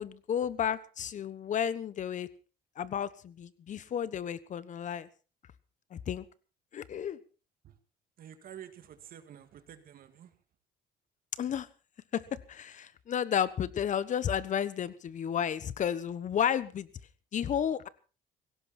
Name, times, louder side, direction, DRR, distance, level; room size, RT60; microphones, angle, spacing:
voice 1, 0.0-2.3 2.8-5.1 5.9-6.2 6.7-7.2 11.4-11.7 12.1-16.9 17.3-17.9, left 9 dB, 45° left, 17 dB, 1.2 m, -32 dB
voice 2, 8.2-10.3, right 10 dB, 60° right, 9 dB, 2.3 m, -49 dB
17.5 x 17.0 x 4.4 m, 0.36 s
cardioid pair, 110°, 17 cm